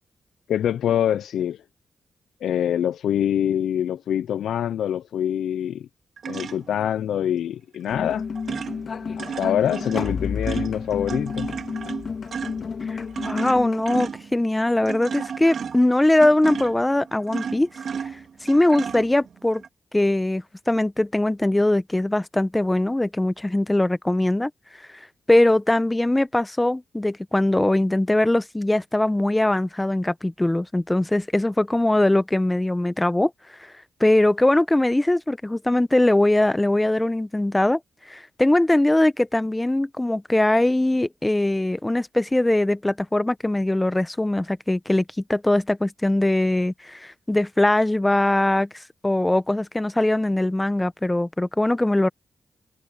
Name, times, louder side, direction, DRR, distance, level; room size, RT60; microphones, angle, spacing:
voice 1, 0.5-1.6 2.4-5.9 6.3-8.3 9.2-11.5, left 10 dB, 90° left, 0.4 m, -25 dB
sound 1, 6.2-6.9 7.9-8.1 8.4-19.7, right 6 dB, 65° right, 2.8 m, -34 dB
sound 2, 7.9-14.1, left 5 dB, 60° left, 2.4 m, -31 dB
voice 2, 12.9-17.7 18.4-19.6 19.9-24.5 25.3-33.3 34.0-37.8 38.1-45.0 45.3-52.1, left 1 dB, 15° left, 1.0 m, -21 dB
cardioid pair, 75°, 0 cm